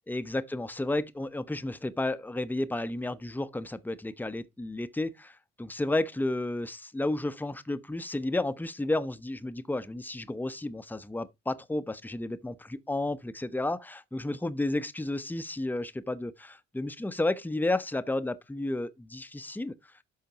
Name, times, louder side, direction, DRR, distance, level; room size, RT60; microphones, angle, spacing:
voice 1, 0.1-19.7, left 2 dB, 5° left, 0.8 m, -32 dB
12.0 x 5.6 x 2.9 m
figure-of-eight pair, 45°, 36 cm